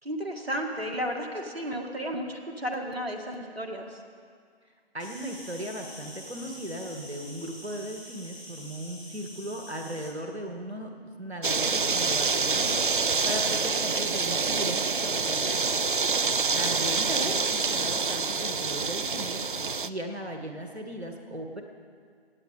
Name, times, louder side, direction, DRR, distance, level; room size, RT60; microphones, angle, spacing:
voice 1, 0.0-4.0 17.1-17.4, equal, 70° right, 3 dB, 2.0 m, -33 dB
voice 2, 4.9-15.6 16.5-21.6, equal, 85° right, 3 dB, 1.9 m, -37 dB
Insect, 5.0-10.1, left 1 dB, 30° left, 5.0 m, -46 dB
sound 1, 11.4-19.9, right 4 dB, 55° right, 0.6 m, -27 dB
26.5 x 9.1 x 5.1 m, 2.1 s
figure-of-eight pair, 150°, 32 cm